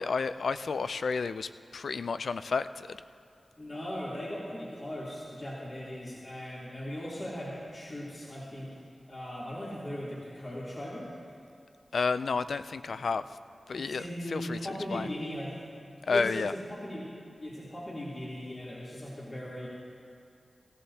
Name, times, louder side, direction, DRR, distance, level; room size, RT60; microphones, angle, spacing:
voice 1, 0.0-3.0 11.9-13.2 13.7-14.0 14.3-14.6 14.9-15.1 16.1-16.5, left 4 dB, 80° left, 12 dB, 0.3 m, -31 dB
voice 2, 3.6-8.7 9.1-11.1 12.9-13.0 13.7-15.6 16.1-17.1 17.3-19.7, equal, 50° left, -8 dB, 3.1 m, -38 dB
18.5 x 15.0 x 2.8 m, 2.3 s
cardioid pair, 45°, 0 cm